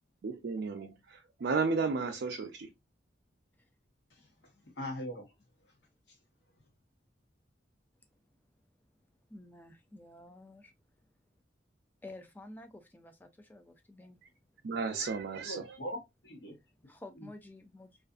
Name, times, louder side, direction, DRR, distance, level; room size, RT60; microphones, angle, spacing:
voice 1, 0.2-2.7 14.6-15.8, right 4 dB, 60° right, 0.4 m, -33 dB
voice 2, 4.6-5.3 15.4-16.6 17.2-17.3, equal, 65° left, 0.9 m, -41 dB
voice 3, 9.3-10.7 12.0-14.2 16.9-18.0, left 2 dB, 10° left, 0.3 m, -51 dB
2.4 x 2.4 x 2.3 m
head